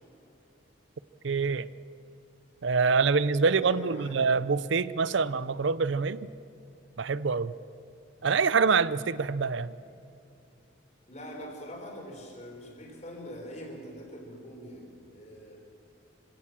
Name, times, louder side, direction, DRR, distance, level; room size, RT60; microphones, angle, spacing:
voice 1, 1.2-1.7 2.6-6.3 7.0-7.5 8.2-9.7, right 5 dB, 75° right, 0.6 m, -25 dB
voice 2, 3.1-4.1 11.1-15.6, equal, 35° left, 4.4 m, -43 dB
26.0 x 17.0 x 7.4 m
head